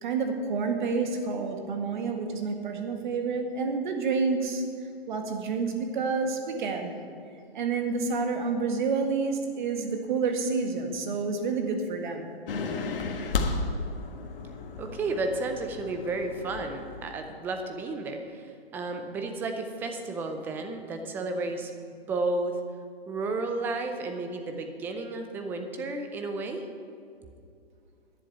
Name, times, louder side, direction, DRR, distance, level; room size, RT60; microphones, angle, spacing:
voice 1, 0.0-4.6 5.1-6.9 7.5-12.3, right 4 dB, 50° right, 4 dB, 1.9 m, -29 dB
sound 1, 12.5-17.3, left 4 dB, 65° left, 1.5 m, -33 dB
voice 2, 14.8-22.6 23.1-26.7, right 3 dB, 5° right, 5 dB, 0.5 m, -32 dB
10.5 x 7.5 x 9.0 m, 2.5 s
hypercardioid pair, 150°, 30 cm